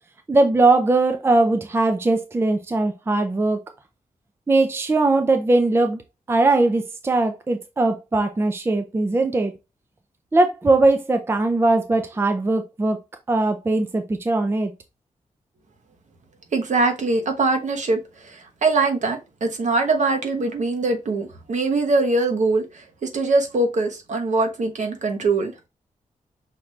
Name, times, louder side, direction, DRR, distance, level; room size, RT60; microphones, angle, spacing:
voice 1, 0.3-3.6 4.5-6.0 6.3-9.5 10.3-13.0 13.3-14.7, right 2 dB, 15° right, 0.4 m, -20 dB
voice 2, 16.5-25.7, right 3 dB, 60° right, 1.0 m, -22 dB
5.8 x 2.6 x 3.2 m
wide cardioid pair, 160°, 14 cm